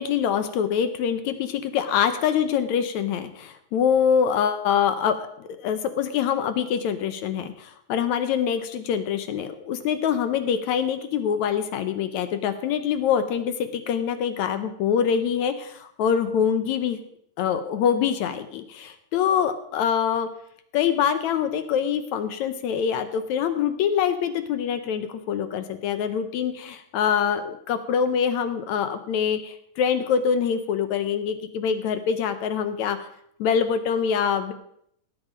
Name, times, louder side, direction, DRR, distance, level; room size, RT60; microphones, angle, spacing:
voice 1, 0.0-17.0 17.4-20.3 20.7-33.1 33.4-34.5, left 8 dB, 70° left, 10 dB, 1.9 m, -25 dB
16.5 x 9.5 x 5.0 m, 0.70 s
omnidirectional pair, 4.0 m